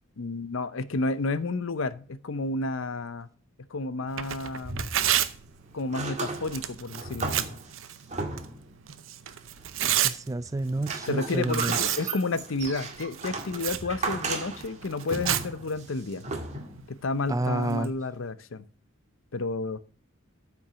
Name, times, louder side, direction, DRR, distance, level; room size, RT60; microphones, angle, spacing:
voice 1, 0.2-3.3 3.7-4.9 5.7-7.6 11.0-16.3 16.9-18.7 19.3-19.8, left 3 dB, 65° left, 16 dB, 0.6 m, -31 dB
Tearing, 4.1-17.9, right 11 dB, 70° right, 0.7 m, -33 dB
sound 1, 4.5-5.5 5.8-8.7 9.3-10.0 10.4-16.9 17.7-17.8, right 3 dB, 35° right, 1.9 m, -36 dB
voice 2, 10.0-12.0 17.3-17.9, right 2 dB, 15° right, 16 dB, 0.4 m, -29 dB
9.0 x 5.9 x 5.6 m, 0.42 s
head